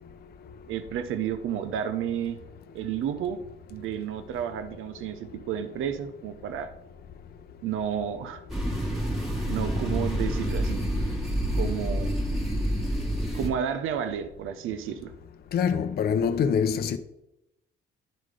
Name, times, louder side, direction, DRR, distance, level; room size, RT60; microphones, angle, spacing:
voice 1, 0.7-2.4 2.7-3.4 3.7-6.7 7.6-8.4 9.5-10.8 11.5-12.1 13.3-15.1, right 9 dB, 75° right, 0.7 m, -31 dB
sound 1, 8.5-13.5, equal, ahead, 1.6 m, -28 dB
voice 2, 15.5-17.0, left 7 dB, 45° left, 0.6 m, -24 dB
11.0 x 3.8 x 4.9 m
cardioid pair, 115°, 21 cm